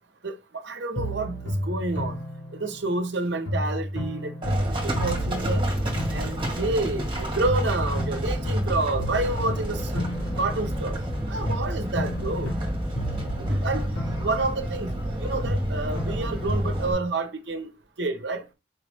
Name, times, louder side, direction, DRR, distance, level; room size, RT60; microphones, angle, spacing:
voice 1, 0.6-2.2 2.5-4.3 4.7-5.6 6.1-10.0 10.4-11.0 11.3-12.5 13.4-13.9 14.2-17.7 18.0-18.5, right 2 dB, 65° right, 0.8 m, -29 dB
sound 1, 1.0-3.1 3.5-7.2 7.5-11.1 11.5-15.2 15.5-17.0, equal, 90° left, 1.3 m, -31 dB
Livestock farm animals working animals, 4.4-16.9, right 1 dB, 25° right, 1.5 m, -30 dB
4.6 x 3.1 x 3.2 m
head